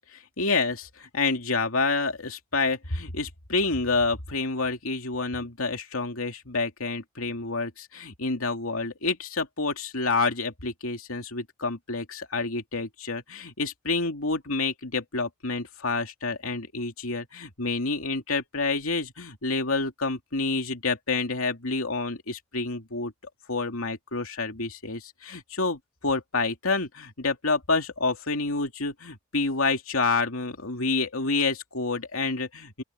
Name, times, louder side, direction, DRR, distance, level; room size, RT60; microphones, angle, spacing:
voice 1, 0.1-23.1 23.5-32.8, left 3 dB, 85° left, 2.6 m, -28 dB
open air
head